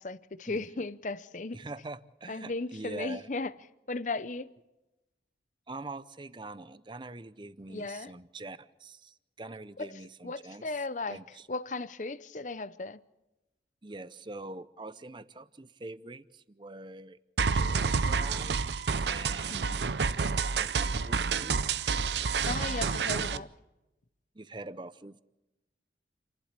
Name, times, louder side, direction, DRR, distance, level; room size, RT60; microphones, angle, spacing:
voice 1, 0.0-1.6 2.3-3.5 3.9-4.5 7.7-8.1 9.8-9.9 10.2-11.2 11.5-13.0 19.5-19.8 22.4-23.5, left 3 dB, 45° left, 0.7 m, -36 dB
voice 2, 1.5-3.3 5.7-10.7 11.1-11.5 13.8-17.2 17.5-18.7 19.0-19.9 20.3-21.7 22.5-23.4 24.3-25.2, right 2 dB, 25° right, 0.6 m, -44 dB
sound 1, 17.4-23.4, right 5 dB, 80° right, 0.6 m, -29 dB
29.5 x 12.0 x 8.3 m
head